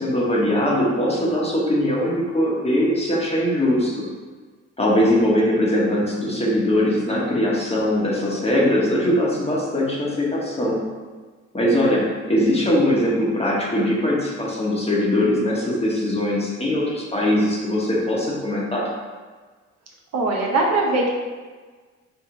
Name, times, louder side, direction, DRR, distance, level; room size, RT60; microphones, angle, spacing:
voice 1, 0.0-4.0 4.8-10.8 11.5-18.9, left 1 dB, 20° left, -4 dB, 1.2 m, -21 dB
voice 2, 20.1-21.1, right 2 dB, 60° right, -2 dB, 0.9 m, -21 dB
4.6 x 2.5 x 3.8 m, 1.4 s
cardioid pair, 90°, 30 cm